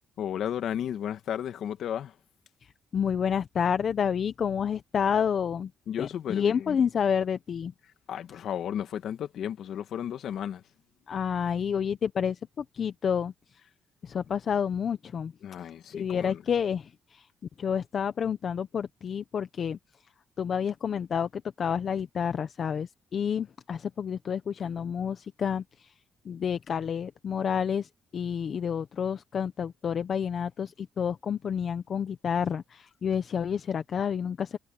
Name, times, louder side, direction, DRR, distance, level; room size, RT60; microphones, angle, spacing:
voice 1, 0.2-2.1 5.9-6.8 8.1-10.6 15.4-16.4, left 9 dB, 70° left, 2.0 m, -33 dB
voice 2, 2.6-5.7 6.0-7.7 11.1-13.3 14.0-15.3 15.9-17.3 17.6-19.8 20.4-25.9 26.2-34.6, left 7 dB, 55° left, 1.0 m, -29 dB
cardioid pair, 90°, 0 cm